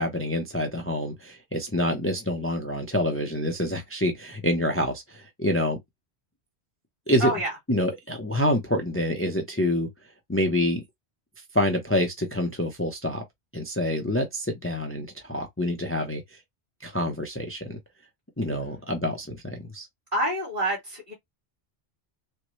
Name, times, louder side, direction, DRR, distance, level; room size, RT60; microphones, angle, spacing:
voice 1, 0.0-5.8 7.1-7.3 7.7-9.9 10.3-10.8 11.5-13.2 13.5-16.2 16.8-17.8 18.4-19.9, left 1 dB, 15° left, 0.6 m, -27 dB
voice 2, 7.2-7.5 20.1-21.1, right 1 dB, 40° right, 2.5 m, -27 dB
3.8 x 2.2 x 3.1 m
omnidirectional pair, 1.1 m